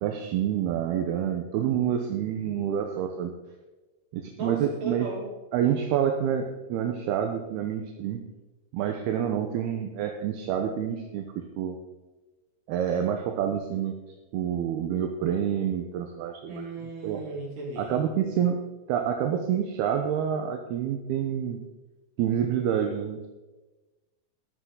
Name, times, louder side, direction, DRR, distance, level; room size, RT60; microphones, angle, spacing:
voice 1, 0.0-3.3 4.1-5.1 5.5-8.2 8.7-11.8 12.7-14.0 14.3-16.6 17.0-17.2 17.8-18.6 18.9-21.6 22.2-23.3, right 9 dB, 75° right, 4 dB, 2.8 m, -28 dB
voice 2, 4.4-5.3 5.6-5.9 16.5-18.0, right 1 dB, 45° right, -3 dB, 4.9 m, -37 dB
13.5 x 13.0 x 3.9 m, 1.1 s
omnidirectional pair, 4.8 m